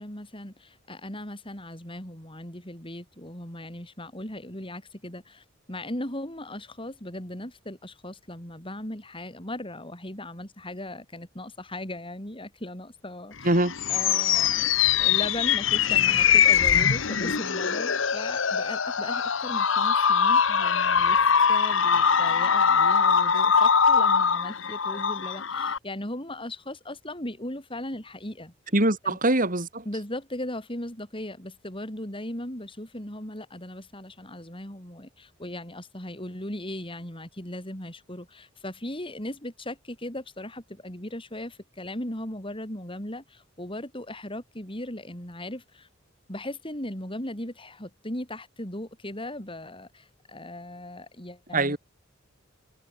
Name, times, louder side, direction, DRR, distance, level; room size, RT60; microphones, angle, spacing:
voice 1, 0.0-13.5 13.9-14.6 15.0-21.2 21.5-28.5 29.0-29.2 29.8-45.9 46.3-51.8, left 1 dB, 25° left, 7.8 m, -38 dB
sound 1, 13.4-25.8, left 7 dB, 70° left, 1.3 m, -22 dB
voice 2, 28.7-29.8 51.5-51.8, right 1 dB, 45° right, 6.8 m, -23 dB
head